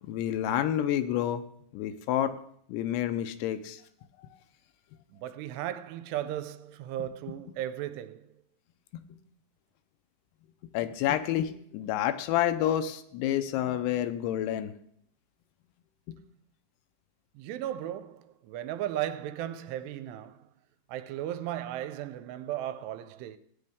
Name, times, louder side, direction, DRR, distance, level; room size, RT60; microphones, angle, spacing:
voice 1, 0.0-1.4 1.7-2.4 2.7-3.8 10.7-14.7 16.1-16.2, left 11 dB, 80° left, 2.7 m, -29 dB
voice 2, 5.1-8.3 17.4-20.4 20.9-23.4, right 12 dB, 85° right, 2.7 m, -36 dB
16.0 x 9.3 x 3.5 m
omnidirectional pair, 4.8 m